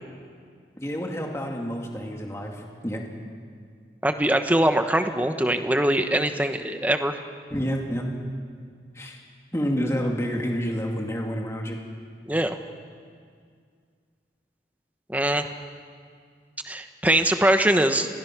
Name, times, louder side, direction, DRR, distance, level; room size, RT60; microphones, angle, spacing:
voice 1, 0.8-3.0 7.5-8.1 8.9-9.2 9.5-11.8, equal, 15° left, 1 dB, 2.3 m, -29 dB
voice 2, 4.0-7.2 12.3-12.6 15.1-15.4 16.6-18.1, right 1 dB, 10° right, 7 dB, 1.1 m, -22 dB
28.0 x 21.5 x 6.1 m, 2.1 s
head